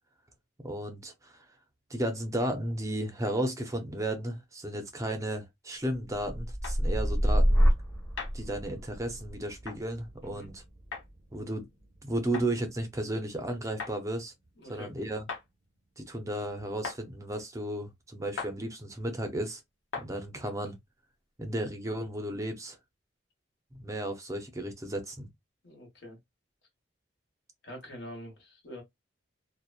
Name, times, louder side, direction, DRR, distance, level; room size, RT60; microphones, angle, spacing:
voice 1, 0.6-1.5 1.9-7.8 8.3-10.6 11.3-11.7 12.0-14.3 14.7-15.3 16.0-19.6 20.0-20.8 21.4-22.8 23.7-25.3, right 1 dB, 15° right, 0.5 m, -34 dB
sound 1, 6.1-14.0 14.4-14.9, equal, 10° left, 1.0 m, -30 dB
sound 2, 6.6-6.8 8.2-8.4 9.6-9.8 10.9-11.1 12.3-12.5 13.8-14.0 15.3-15.4 16.8-17.0 18.4-18.5 19.9-20.1, left 5 dB, 90° left, 0.9 m, -37 dB
voice 2, 14.6-14.9 25.6-26.2 27.6-28.8, left 1 dB, 60° left, 1.2 m, -45 dB
2.8 x 2.1 x 2.3 m
head